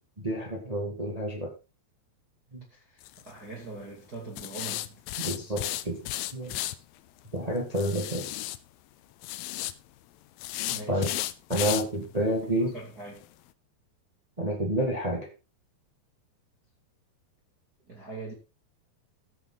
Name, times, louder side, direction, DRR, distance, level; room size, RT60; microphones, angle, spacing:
voice 1, 0.2-1.5 2.5-2.6 5.2-6.1 6.3-6.5 7.3-8.3 10.9-11.1 11.5-12.7 14.4-15.3, right 1 dB, 60° right, 0.4 m, -29 dB
voice 2, 2.7-5.0 10.7-11.1 12.0-12.1 12.6-13.2 17.9-18.3, right 3 dB, 30° right, 2.2 m, -42 dB
sound 1, 3.0-3.3 4.4-6.7 7.8-8.6 9.2-9.7 10.4-11.8 12.2-12.3 12.8-12.9 13.2-13.3, left 15 dB, 85° left, 2.1 m, -33 dB
15.0 x 7.0 x 3.9 m
omnidirectional pair, 5.0 m